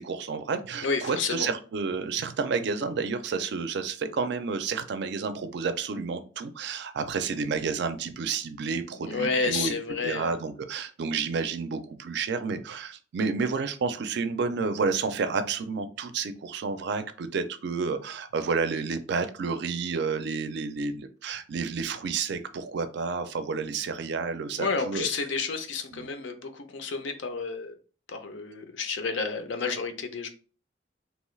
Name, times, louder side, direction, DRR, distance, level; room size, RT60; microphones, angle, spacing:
voice 1, 0.0-9.7 10.0-25.1 25.9-26.1, right 5 dB, 60° right, 10 dB, 0.4 m, -30 dB
voice 2, 0.8-1.5 9.0-10.4 24.6-27.7 28.1-30.3, left 4 dB, 70° left, 6 dB, 0.5 m, -30 dB
2.9 x 2.3 x 3.1 m, 0.39 s
head